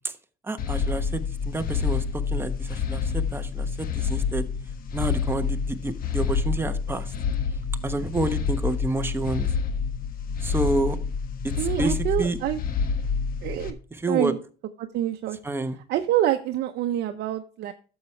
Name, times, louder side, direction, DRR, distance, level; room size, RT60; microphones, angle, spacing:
voice 1, 0.5-2.0 2.3-4.4 4.9-7.1 7.8-9.5 10.4-11.0 11.4-12.4 14.0-14.3 15.4-15.8, right 2 dB, 15° right, 7 dB, 1.1 m, -29 dB
sound 1, 0.6-13.7, left 6 dB, 60° left, 1.3 m, -28 dB
voice 2, 11.6-12.6 13.4-13.8 14.1-14.4 14.8-15.4 15.9-17.7, right 12 dB, 75° right, 6 dB, 0.8 m, -26 dB
11.5 x 7.3 x 3.3 m, 0.40 s
cardioid pair, 110°, 17 cm